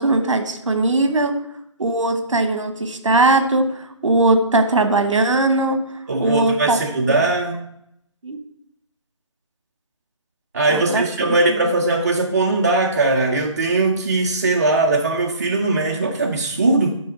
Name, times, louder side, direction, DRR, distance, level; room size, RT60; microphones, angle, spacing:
voice 1, 0.0-1.3 1.8-5.8 6.2-6.8 8.2-8.4 10.7-11.7, right 2 dB, 70° right, 8 dB, 1.0 m, -19 dB
voice 2, 6.1-7.7 10.5-16.9, right 2 dB, 35° right, 2 dB, 0.5 m, -20 dB
9.4 x 3.2 x 4.9 m, 0.75 s
figure-of-eight pair, 165°, 16 cm